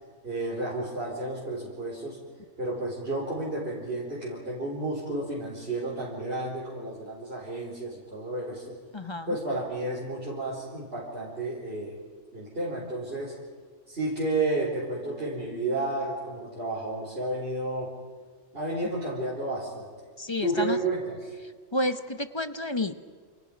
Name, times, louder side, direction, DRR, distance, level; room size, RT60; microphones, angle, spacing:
voice 1, 0.2-2.2 2.6-8.7 9.3-12.0 12.3-13.3 13.9-17.9 18.5-19.9 20.4-21.2, right 2 dB, 45° right, -7 dB, 4.8 m, -31 dB
voice 2, 8.9-9.4 20.2-20.8 21.7-23.0, left 1 dB, 25° left, 10 dB, 0.8 m, -30 dB
28.5 x 28.5 x 5.3 m, 1.5 s
omnidirectional pair, 1.4 m